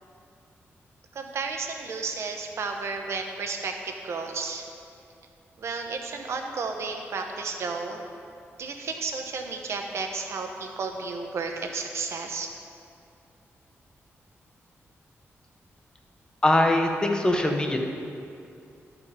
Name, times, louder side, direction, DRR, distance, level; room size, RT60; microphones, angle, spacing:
voice 1, 1.1-4.7 5.6-8.1 8.6-12.5, right 4 dB, 70° right, 3 dB, 0.9 m, -32 dB
voice 2, 16.4-17.8, left 1 dB, 15° left, 3 dB, 0.9 m, -22 dB
12.0 x 4.9 x 4.9 m, 2.5 s
wide cardioid pair, 115°, 5 cm